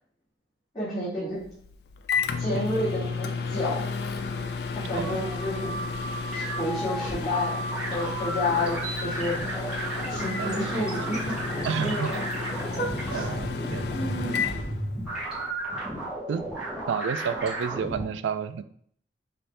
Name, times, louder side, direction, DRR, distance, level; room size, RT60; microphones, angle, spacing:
voice 1, 0.7-1.4 2.4-3.8 4.7-5.7 6.3-9.4 10.1-12.2 12.8-13.3 13.9-14.4, left 1 dB, 25° left, -14 dB, 1.9 m, -30 dB
Microwave oven, 1.4-15.4, left 5 dB, 60° left, 0.4 m, -33 dB
sound 1, 4.8-18.1, right 1 dB, 5° right, 1.0 m, -33 dB
voice 2, 4.9-5.3 10.4-11.1 11.6-12.1 13.1-13.8 16.3-16.5 16.9-18.6, right 6 dB, 80° right, 12 dB, 0.3 m, -31 dB
5.5 x 2.6 x 3.3 m, 0.62 s
head